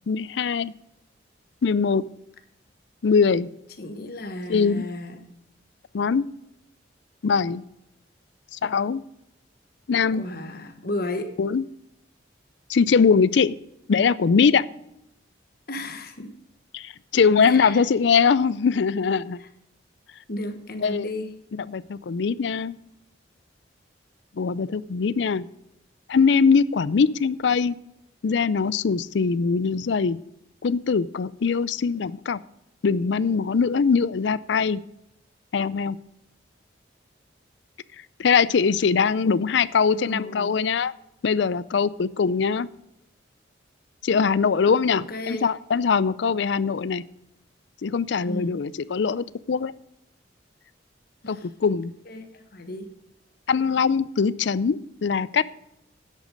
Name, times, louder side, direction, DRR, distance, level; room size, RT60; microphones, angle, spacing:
voice 1, 0.1-0.7 1.6-2.0 3.0-3.5 4.5-4.8 5.9-6.3 7.2-7.6 8.5-9.0 9.9-10.3 11.4-11.6 12.7-13.5 13.9-14.6 16.7-19.4 20.8-21.1 21.5-22.8 24.4-25.5 26.1-27.7 28.2-30.2 30.6-32.4 32.8-34.8 35.5-36.0 38.2-40.9 41.2-42.7 44.0-47.0 47.8-49.7 51.3-51.9 53.5-55.4, left 5 dB, 65° left, 19 dB, 0.4 m, -22 dB
voice 2, 3.8-5.3 10.1-11.4 15.7-16.3 17.4-17.8 19.4-19.5 20.3-21.4 39.9-40.6 44.1-44.2 44.9-45.5 48.2-48.6 51.2-51.5 52.0-52.9, left 2 dB, 50° left, 7 dB, 1.3 m, -34 dB
10.5 x 8.3 x 5.2 m, 0.82 s
head